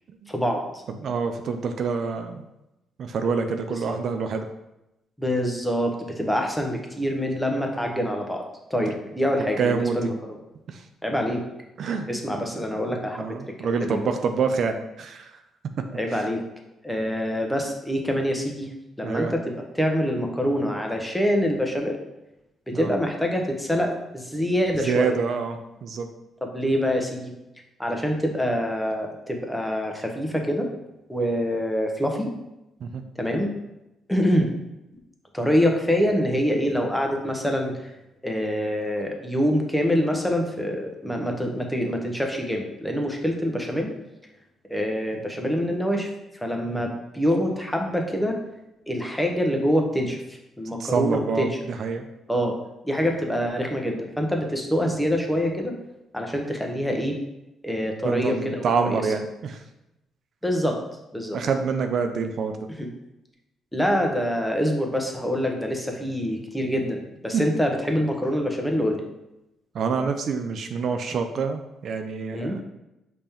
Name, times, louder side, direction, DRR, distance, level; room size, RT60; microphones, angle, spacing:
voice 1, 0.3-0.8 3.9-4.0 5.2-8.4 8.7-10.1 11.0-11.4 12.1-13.4 13.9-14.0 15.9-16.4 16.8-18.7 19.0-19.4 19.7-22.0 22.7-25.1 26.4-27.3 27.8-30.7 31.1-32.3 33.2-33.5 34.1-34.5 35.3-37.9 38.2-43.9 44.7-46.1 46.4-48.4 48.9-51.5 52.3-52.6 52.8-55.7 56.1-57.2 57.6-59.0 60.4-60.8 61.1-61.4 62.8-62.9 63.7-69.0 72.3-72.6, equal, 5° left, 2 dB, 0.8 m, -25 dB
voice 2, 1.0-2.5 3.0-4.5 8.9-9.0 9.6-10.1 10.7-10.9 11.8-12.1 12.5-15.4 16.1-16.3 19.0-19.3 22.7-22.9 24.8-26.1 32.8-33.0 46.7-46.9 50.8-52.1 58.0-59.6 61.3-62.6 67.3-67.4 69.7-72.6, right 5 dB, 60° right, 6 dB, 0.4 m, -27 dB
5.1 x 2.8 x 3.5 m, 0.92 s
cardioid pair, 90°, 0 cm